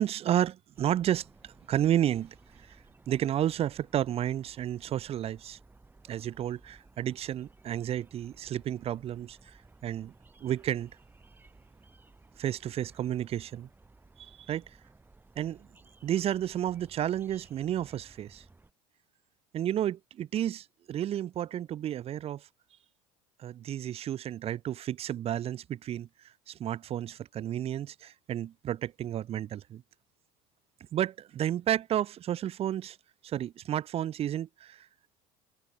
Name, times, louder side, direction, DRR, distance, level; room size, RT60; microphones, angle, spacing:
voice 1, 0.0-2.8 3.1-5.6 6.1-9.4 9.8-10.1 10.4-10.9 12.4-13.7 14.2-14.6 15.4-15.7 16.0-18.4 19.5-22.5 23.4-26.1 26.5-29.8 30.9-33.0 33.2-34.9, right 11 dB, 45° right, 1.0 m, -31 dB
sound 1, 0.8-18.7, right 3 dB, 15° right, 5.1 m, -58 dB
supercardioid pair, 100°, 15 cm